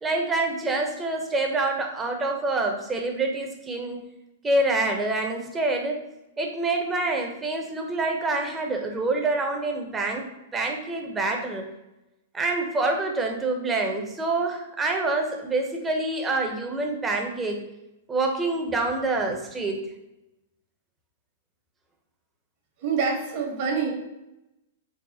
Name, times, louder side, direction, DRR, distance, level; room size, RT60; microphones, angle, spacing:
voice 1, 0.0-4.0 4.4-6.0 6.4-10.3 10.5-11.7 12.3-17.6 18.1-19.9, right 2 dB, 15° right, 2 dB, 0.7 m, -26 dB
voice 2, 22.8-23.9, right 5 dB, 50° right, 0 dB, 1.2 m, -26 dB
4.0 x 2.1 x 4.1 m, 0.93 s
hypercardioid pair, 120°, 0 cm